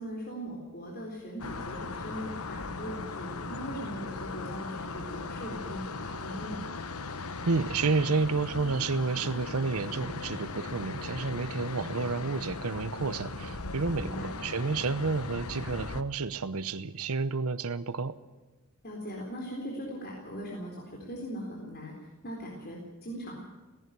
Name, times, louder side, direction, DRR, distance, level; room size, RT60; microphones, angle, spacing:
voice 1, 0.0-6.6 14.0-14.3 18.8-21.9 22.2-23.4, equal, 45° left, -2 dB, 4.0 m, -40 dB
sound 1, 1.4-16.0, left 3 dB, 90° left, 1.2 m, -38 dB
voice 2, 7.5-18.1, right 4 dB, 90° right, 14 dB, 0.9 m, -30 dB
17.5 x 16.0 x 9.5 m, 1.2 s
head